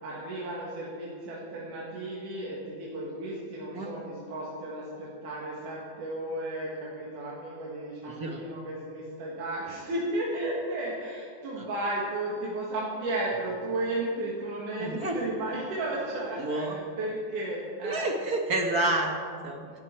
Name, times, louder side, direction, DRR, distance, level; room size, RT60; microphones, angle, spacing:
voice 1, 0.0-18.1 19.6-19.8, right 1 dB, 85° right, -5 dB, 3.6 m, -34 dB
voice 2, 8.1-8.4 14.8-15.2 16.4-16.8 17.8-19.8, right 2 dB, 40° right, 2 dB, 1.6 m, -29 dB
26.0 x 11.0 x 4.6 m, 2.2 s
omnidirectional pair, 3.5 m